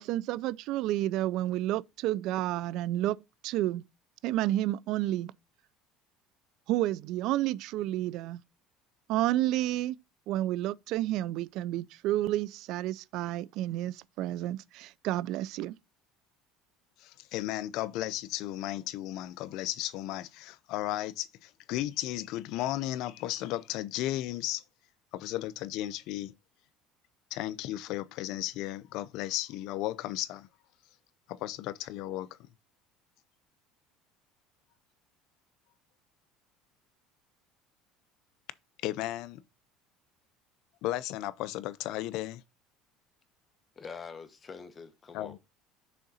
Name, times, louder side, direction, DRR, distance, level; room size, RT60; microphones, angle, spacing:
voice 1, 0.0-3.2 3.4-3.8 4.2-5.3 6.7-8.4 9.1-10.0 10.3-15.8, right 14 dB, 65° right, 0.3 m, -30 dB
voice 2, 17.0-24.6 25.1-26.3 27.3-30.5 31.3-32.3 38.8-39.4 40.8-42.4 45.1-45.4, left 15 dB, 65° left, 0.4 m, -34 dB
voice 3, 43.8-45.4, left 5 dB, 25° left, 0.9 m, -45 dB
6.3 x 3.7 x 4.2 m
supercardioid pair, 110°, 0 cm